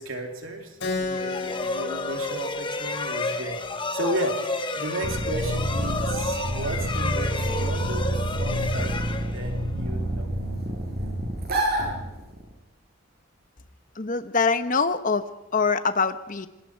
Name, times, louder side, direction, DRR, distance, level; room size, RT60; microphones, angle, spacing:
voice 1, 0.0-3.6 3.9-8.1 8.4-8.9 9.3-10.3, right 1 dB, 65° right, 2 dB, 3.0 m, -34 dB
Keyboard (musical), 0.8-5.9, left 3 dB, 55° left, 5.0 m, -35 dB
sound 1, 1.1-9.8, left 3 dB, 20° left, 1.2 m, -31 dB
sound 2, 5.0-12.5, right 1 dB, 45° right, 7.3 m, -28 dB
voice 2, 14.0-16.5, left 4 dB, 40° left, 10 dB, 1.0 m, -24 dB
26.5 x 21.0 x 4.7 m, 0.99 s
head